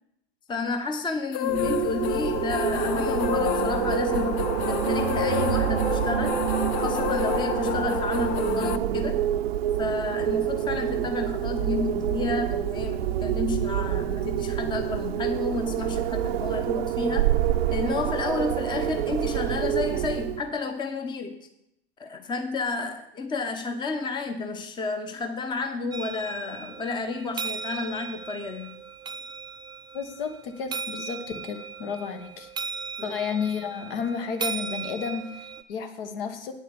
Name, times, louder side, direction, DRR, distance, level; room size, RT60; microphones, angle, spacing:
voice 1, 0.5-6.4 6.8-9.3 9.8-17.3 17.7-21.4 22.0-28.8 33.0-33.2, left 4 dB, 15° left, 8 dB, 0.8 m, -31 dB
sound 1, 1.3-8.8, left 11 dB, 45° left, 0.6 m, -30 dB
Wind, 1.5-20.5, right 11 dB, 75° right, 0.7 m, -27 dB
sound 2, 25.9-35.6, right 5 dB, 15° right, 0.4 m, -37 dB
voice 2, 29.9-32.5 33.0-36.5, left 6 dB, 65° left, 7 dB, 1.6 m, -32 dB
8.7 x 7.1 x 7.2 m, 0.80 s
hypercardioid pair, 115°, 31 cm